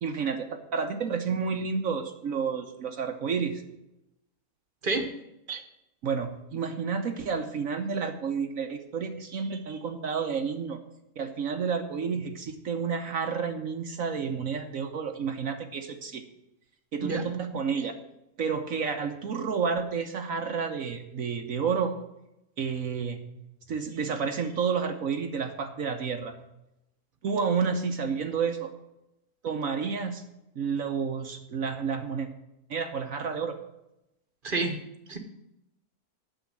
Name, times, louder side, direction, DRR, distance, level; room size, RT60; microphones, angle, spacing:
voice 1, 0.0-3.6 5.5-5.6 6.0-10.8 11.2-16.2 16.9-17.9 18.4-21.9 22.6-23.2 23.7-26.4 27.2-28.7 29.4-30.2 30.5-32.3 32.7-33.6, right 6 dB, 65° right, 5 dB, 1.3 m, -30 dB
voice 2, 34.4-34.8 35.1-35.2, right 3 dB, 35° right, 7 dB, 1.3 m, -28 dB
9.1 x 7.0 x 8.8 m, 0.89 s
omnidirectional pair, 1.6 m